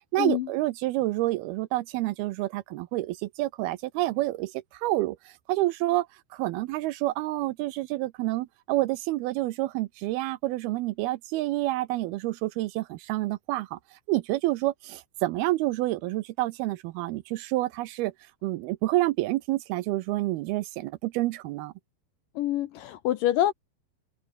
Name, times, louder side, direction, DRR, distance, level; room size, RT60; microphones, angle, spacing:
voice 1, 0.1-18.1 18.4-21.7, right 17 dB, 80° right, 2.5 m, -28 dB
voice 2, 22.4-23.5, left 13 dB, 70° left, 2.2 m, -26 dB
open air
omnidirectional pair, 4.7 m